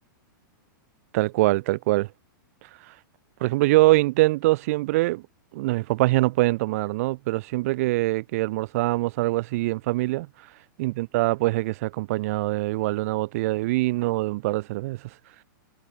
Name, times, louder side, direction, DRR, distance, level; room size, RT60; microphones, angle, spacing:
voice 1, 1.1-2.1 3.4-5.2 5.5-10.3 10.8-15.0, right 19 dB, 40° right, 7.1 m, -23 dB
supercardioid pair, 170°, 11 cm